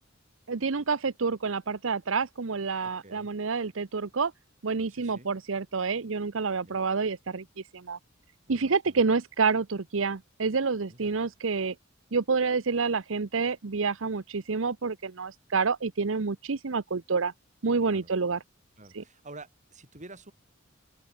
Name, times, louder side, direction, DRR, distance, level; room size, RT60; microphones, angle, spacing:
voice 1, 0.5-4.3 4.6-8.0 8.5-11.7 12.1-17.3 17.6-18.4 18.9-19.0, right 4 dB, 75° right, 0.8 m, -28 dB
voice 2, 2.8-3.3 4.9-5.3 6.6-6.8 8.6-9.0 10.9-11.2 17.9-18.1 18.8-20.3, right 2 dB, 40° right, 5.3 m, -49 dB
open air
head